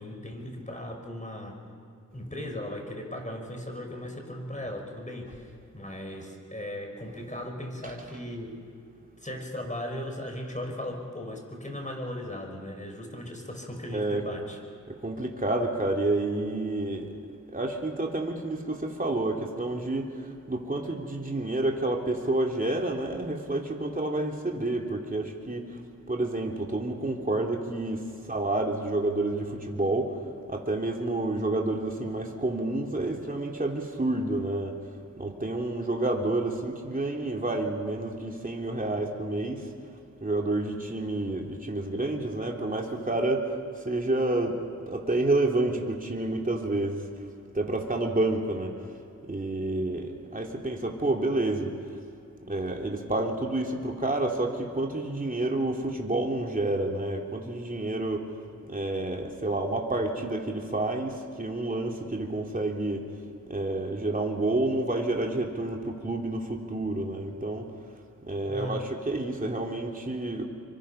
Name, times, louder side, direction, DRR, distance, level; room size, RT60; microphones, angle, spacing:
voice 1, 0.0-1.6 2.1-5.5 5.7-8.6 9.2-14.6 68.5-68.8, left 1 dB, 25° left, 2 dB, 5.9 m, -37 dB
voice 2, 14.9-17.1 17.5-25.8 26.1-30.2 30.5-34.8 35.2-39.7 40.2-43.5 43.8-44.6 44.9-47.2 47.5-48.8 49.2-51.8 52.4-58.3 58.7-63.1 63.5-67.7 68.2-70.4, right 2 dB, 25° right, 1 dB, 3.2 m, -29 dB
25.5 x 24.5 x 5.8 m, 2.5 s
cardioid pair, 45°, 32 cm